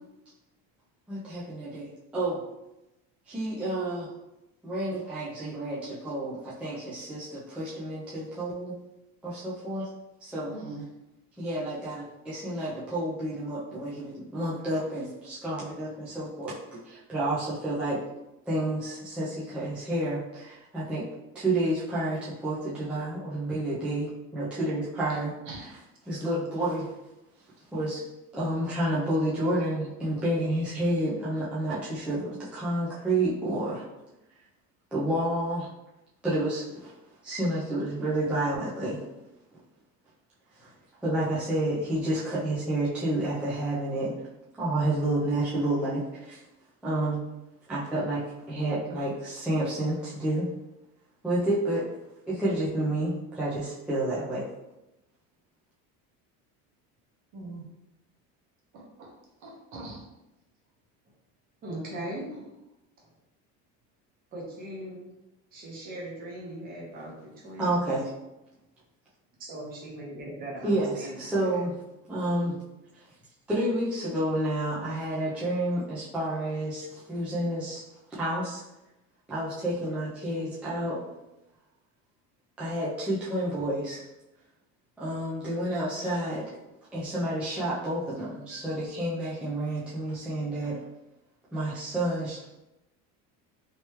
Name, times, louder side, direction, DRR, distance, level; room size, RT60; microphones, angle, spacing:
voice 1, 1.1-2.4 3.3-4.1 4.6-8.7 9.2-9.9 10.2-10.5 11.4-18.0 18.4-21.1 21.3-25.3 25.6-25.7 26.1-26.9 27.7-28.0 28.3-33.9 34.9-35.7 36.2-36.9 37.2-39.0 40.5-40.7 41.0-44.3 44.6-46.4 46.8-47.2 47.7-50.5 51.2-51.9 52.3-54.5 67.6-68.1 70.6-71.8 72.1-72.6 72.9-73.0 73.5-77.8 78.1-78.6 79.3-81.0 82.6-84.0 85.0-86.5 86.9-90.8 91.5-92.5, right 1 dB, 5° right, -9 dB, 0.4 m, -30 dB
voice 2, 10.5-10.8 25.1-25.2 25.5-25.7 57.3-57.7 58.7-59.1 59.4-60.1, right 3 dB, 60° right, -2 dB, 1.1 m, -42 dB
voice 3, 61.6-62.4 63.0-63.1 64.3-65.0 65.5-67.8 69.4-71.6, right 1 dB, 30° right, -4 dB, 1.0 m, -39 dB
3.3 x 3.0 x 3.0 m, 0.94 s
cardioid pair, 170°, 32 cm